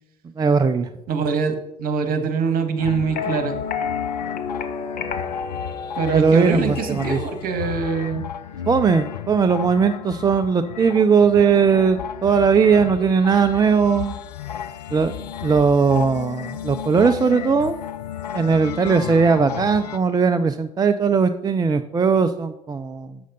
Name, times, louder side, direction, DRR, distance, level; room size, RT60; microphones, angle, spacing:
voice 1, 0.4-0.9 6.1-7.2 8.7-14.2 14.9-17.8 18.3-23.2, right 5 dB, 20° right, 8 dB, 0.5 m, -19 dB
voice 2, 1.1-3.6 6.0-8.3, right 5 dB, 45° right, 7 dB, 1.5 m, -24 dB
sound 1, 2.8-20.0, left 10 dB, 80° left, 0.6 m, -33 dB
sound 2, 3.1-7.1, left 6 dB, 45° left, 1.1 m, -30 dB
7.8 x 6.4 x 5.3 m, 0.86 s
figure-of-eight pair, 70°, 21 cm